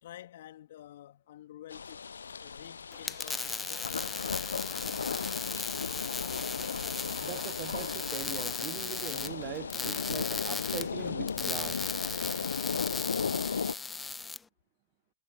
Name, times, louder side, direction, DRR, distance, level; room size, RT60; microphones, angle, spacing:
voice 1, 0.0-2.1 2.4-4.5, left 13 dB, 70° left, 2.1 m, -50 dB
sound 1, 1.7-13.7, left 6 dB, 85° left, 0.4 m, -36 dB
sound 2, 2.9-14.4, left 4 dB, 15° left, 1.0 m, -37 dB
voice 2, 7.2-11.9, right 23 dB, 50° right, 0.7 m, -41 dB
hypercardioid pair, 90°, 0 cm